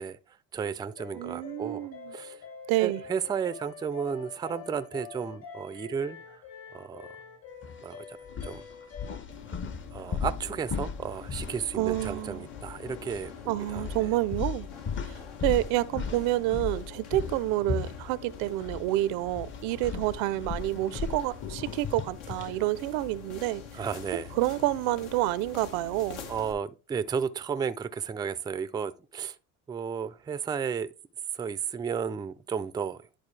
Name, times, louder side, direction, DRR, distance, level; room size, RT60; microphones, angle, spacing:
voice 1, 0.0-2.4 2.8-6.4 6.7-7.2 7.8-8.2 8.4-8.6 9.9-14.1 23.7-24.3 26.3-29.4 29.7-30.9 31.3-33.1, right 7 dB, 10° right, 0.3 m, -33 dB
sound 1, 1.0-9.2, left 6 dB, 65° left, 2.5 m, -46 dB
voice 2, 1.2-2.0 2.7-3.0 11.8-12.4 13.5-14.7 15.0-15.1 15.4-23.6 24.4-26.2, right 16 dB, 85° right, 0.6 m, -28 dB
sound 2, 7.6-7.8 8.3-12.7 13.0-13.2 13.7-18.9 19.2-22.6, left 5 dB, 30° left, 0.7 m, -37 dB
sound 3, 9.3-26.5, left 7 dB, 90° left, 1.6 m, -45 dB
11.0 x 4.0 x 3.2 m
cardioid pair, 115°, 37 cm